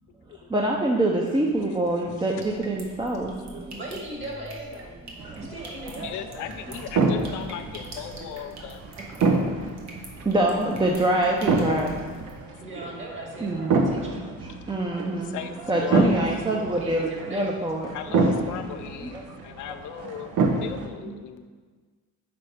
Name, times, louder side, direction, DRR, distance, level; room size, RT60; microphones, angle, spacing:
voice 1, 0.5-3.8 5.2-5.5 9.1-9.3 10.2-12.1 13.4-13.8 14.7-15.4 15.7-17.9 18.2-18.3 19.0-19.2 21.0-21.2, right 1 dB, 15° right, -1 dB, 0.6 m, -25 dB
sound 1, 2.4-12.3, right 2 dB, 65° right, 1.3 m, -45 dB
voice 2, 3.7-5.0 5.3-6.1 12.6-14.3 16.0-17.7, right 1 dB, 40° right, -1 dB, 1.8 m, -38 dB
sound 2, 5.2-20.9, right 3 dB, 85° right, 0.9 m, -28 dB
voice 3, 6.0-8.8 12.4-12.5 15.0-16.2 17.9-21.4, left 9 dB, 80° left, 7 dB, 0.5 m, -37 dB
6.0 x 4.2 x 5.0 m, 1.5 s
cardioid pair, 90°, 30 cm